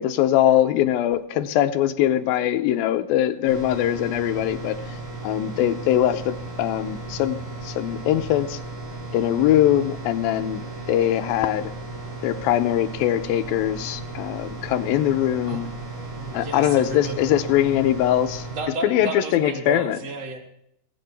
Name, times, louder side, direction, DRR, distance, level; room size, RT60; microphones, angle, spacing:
voice 1, 0.0-4.8 5.2-8.6 9.1-11.7 12.2-15.7 16.3-18.5 18.8-20.0, left 12 dB, 85° left, 9 dB, 2.6 m, -22 dB
sound 1, 3.5-18.6, right 2 dB, 20° right, 4.9 m, -35 dB
voice 2, 15.9-17.5 18.5-20.4, right 3 dB, 80° right, 4 dB, 0.7 m, -33 dB
24.0 x 9.3 x 4.3 m, 0.78 s
omnidirectional pair, 4.2 m